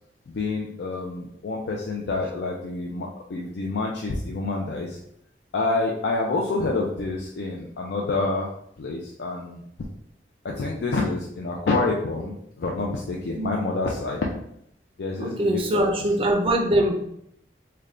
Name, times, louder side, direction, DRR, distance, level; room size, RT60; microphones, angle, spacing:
voice 1, 0.3-5.0 5.5-8.5 8.8-9.6 10.4-14.2 15.0-15.9, left 3 dB, 65° left, -1 dB, 0.4 m, -28 dB
voice 2, 15.2-16.9, right 1 dB, 30° right, 3 dB, 0.4 m, -22 dB
3.4 x 2.2 x 3.7 m, 0.74 s
head